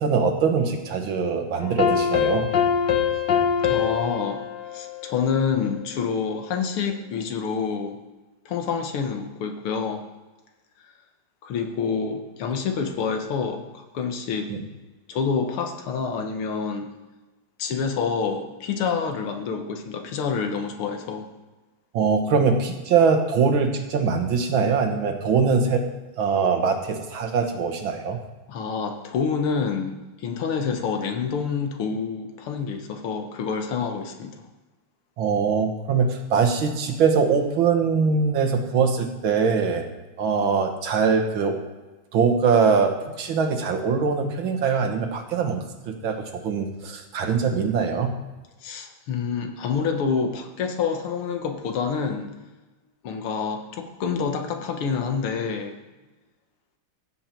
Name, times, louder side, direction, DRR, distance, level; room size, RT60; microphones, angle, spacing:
voice 1, 0.0-2.5 14.5-14.6 21.9-25.8 26.2-28.2 35.2-39.9 40.2-41.6 42.1-48.1, right 5 dB, 70° right, 5 dB, 2.0 m, -22 dB
sound 1, 1.6-5.8, left 7 dB, 60° left, 1.4 m, -24 dB
voice 2, 3.7-4.4 4.7-8.0 8.5-10.0 11.4-14.5 15.1-16.9 17.6-21.3 28.5-34.5 48.6-52.3 53.0-55.8, left 6 dB, 90° left, 5 dB, 2.1 m, -27 dB
15.5 x 7.5 x 4.5 m, 1.2 s
omnidirectional pair, 2.3 m